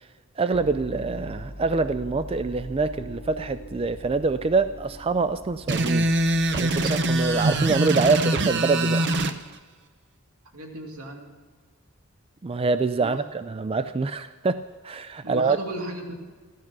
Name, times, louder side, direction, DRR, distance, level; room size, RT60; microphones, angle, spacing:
voice 1, 0.4-6.1 6.5-9.0 12.4-15.6, right 4 dB, 25° right, 12 dB, 0.3 m, -25 dB
sound 1, 0.5-7.8, left 1 dB, 30° left, 1.0 m, -41 dB
sound 2, 5.7-9.3, right 2 dB, 55° right, 0.7 m, -23 dB
voice 2, 8.1-9.2 10.5-11.3 13.0-13.2 15.2-16.1, right 1 dB, 85° right, 1 dB, 2.5 m, -36 dB
15.0 x 12.5 x 6.0 m, 1.5 s
head